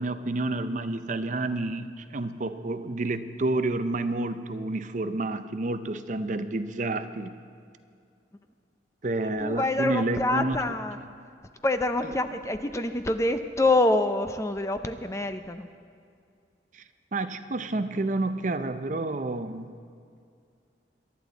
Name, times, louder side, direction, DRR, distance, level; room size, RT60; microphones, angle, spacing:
voice 1, 0.0-7.4 9.0-10.6 11.0-11.1 12.0-12.1 16.7-16.8 17.1-19.7, right 2 dB, 45° right, 11 dB, 0.5 m, -29 dB
voice 2, 9.4-11.0 11.6-15.7, left 2 dB, 15° left, 9 dB, 0.5 m, -26 dB
22.5 x 11.0 x 4.0 m, 2.3 s
head